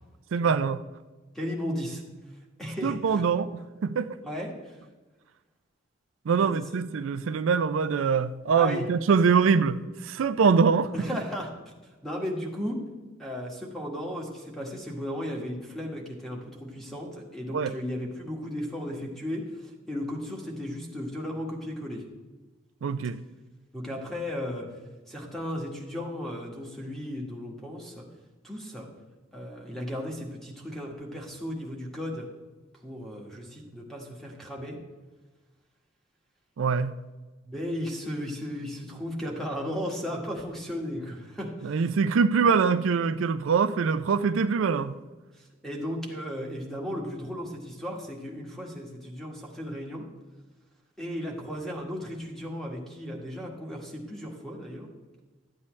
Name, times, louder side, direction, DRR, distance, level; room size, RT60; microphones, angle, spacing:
voice 1, 0.3-0.8 2.8-3.5 3.8-4.2 6.3-10.9 17.5-17.7 22.8-23.2 36.6-37.0 41.6-44.9, right 5 dB, 75° right, 0.4 m, -24 dB
voice 2, 1.3-2.0 2.6-3.3 4.2-4.8 6.4-6.6 8.6-8.9 10.9-11.5 11.8-12.8 13.2-22.0 23.7-24.7 25.1-28.0 28.4-28.9 29.3-32.3 32.8-34.8 37.5-41.8 45.6-50.1 51.0-54.9, equal, ahead, 1.6 m, -35 dB
12.5 x 8.3 x 3.2 m
head